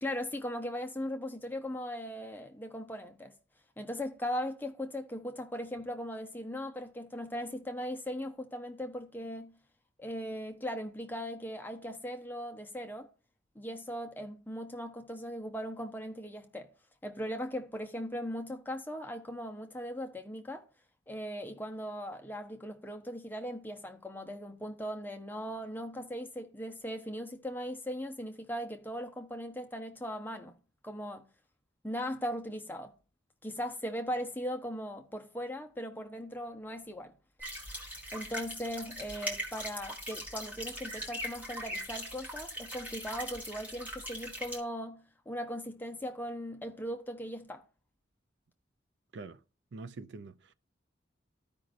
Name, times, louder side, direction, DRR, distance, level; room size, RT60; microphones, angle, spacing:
voice 1, 0.0-3.3 3.8-9.5 10.0-13.1 13.6-16.7 17.0-20.6 21.1-30.6 30.8-31.3 31.8-32.9 33.4-37.1 38.1-47.6, equal, 10° left, 0.6 m, -39 dB
sound 1, 37.4-44.6, equal, 10° right, 1.7 m, -41 dB
voice 2, 49.7-50.5, right 3 dB, 70° right, 0.5 m, -45 dB
14.0 x 5.2 x 2.5 m
head